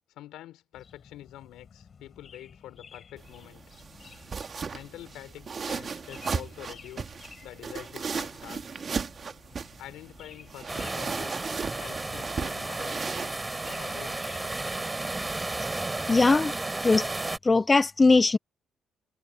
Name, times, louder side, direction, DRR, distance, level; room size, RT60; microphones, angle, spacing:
voice 1, 0.1-3.6 4.7-7.2 7.4-8.7 9.8-11.4 11.8-13.3 13.6-14.5, left 14 dB, 90° left, 4.4 m, -46 dB
sound 1, 0.7-17.1, left 6 dB, 45° left, 6.6 m, -53 dB
sound 2, 3.2-15.8, right 5 dB, 45° right, 2.1 m, -37 dB
sound 3, 10.7-17.4, right 2 dB, 20° right, 3.4 m, -33 dB
voice 2, 16.1-16.5 16.8-17.1 17.4-18.4, left 3 dB, 25° left, 0.5 m, -20 dB
cardioid pair, 90°, 0 cm